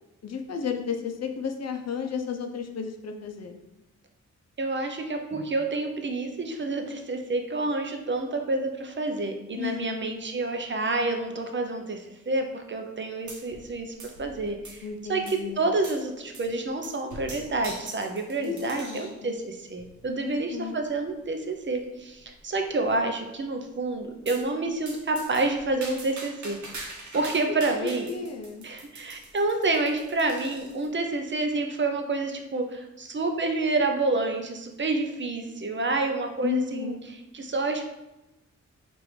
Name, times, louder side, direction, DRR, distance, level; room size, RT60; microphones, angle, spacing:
voice 1, 0.2-3.6 9.5-10.0 14.8-15.7 18.4-19.4 20.2-20.8 27.5-28.7 36.4-37.0, left 6 dB, 60° left, 5 dB, 0.5 m, -33 dB
voice 2, 4.6-13.9 14.2-28.1 28.6-37.8, right 2 dB, 40° right, 4 dB, 0.5 m, -29 dB
sound 1, 13.3-13.7 14.0-14.9 15.3-15.4 15.8-16.0 16.3-16.5 16.8-19.2 19.8-20.1 20.8-20.9 21.2-21.3 21.6-21.7 22.2-22.6 24.3-24.5 24.9-30.9, right 2 dB, 80° right, 0.8 m, -43 dB
4.9 x 2.6 x 3.1 m, 0.99 s
wide cardioid pair, 100°, 29 cm